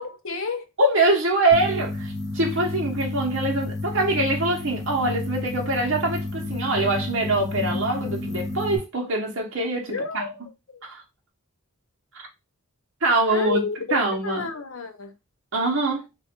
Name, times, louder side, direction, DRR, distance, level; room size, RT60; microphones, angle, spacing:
voice 1, 0.0-0.6 9.9-10.8 13.3-15.1, left 4 dB, 65° left, 0.8 m, -31 dB
voice 2, 0.8-10.3 10.8-11.0 12.1-12.3 13.0-13.6 13.9-14.4 15.5-16.0, right 2 dB, 55° right, 0.9 m, -24 dB
sound 1, 1.5-8.8, left 2 dB, 15° left, 0.8 m, -31 dB
3.0 x 2.4 x 4.3 m
head